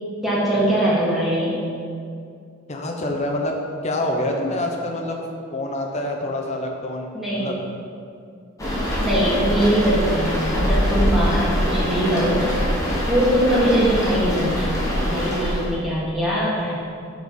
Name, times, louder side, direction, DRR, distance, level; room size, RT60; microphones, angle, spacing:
voice 1, 0.2-1.6 7.1-7.5 8.6-12.5 13.0-16.7, right 1 dB, ahead, -9 dB, 1.7 m, -22 dB
voice 2, 2.7-3.6 3.8-5.2 5.5-7.6, left 1 dB, 30° left, 1 dB, 0.8 m, -26 dB
sound 1, 8.6-15.7, equal, 15° left, 1.2 m, -23 dB
6.3 x 4.8 x 5.3 m, 2.3 s
head